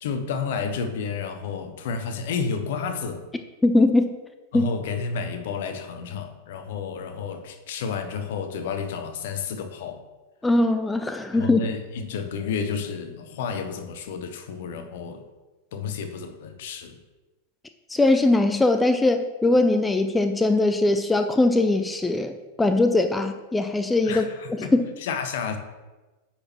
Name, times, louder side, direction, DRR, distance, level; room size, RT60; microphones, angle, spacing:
voice 1, 0.0-3.2 4.5-10.0 11.3-15.2 15.7-17.0 24.0-25.6, left 6 dB, 55° left, 8 dB, 0.6 m, -31 dB
voice 2, 3.6-4.2 4.5-4.7 10.4-11.6 17.9-22.3 22.6-24.9, left 2 dB, 10° left, 8 dB, 0.3 m, -21 dB
9.5 x 4.2 x 3.0 m, 1.2 s
figure-of-eight pair, 90°, 0 cm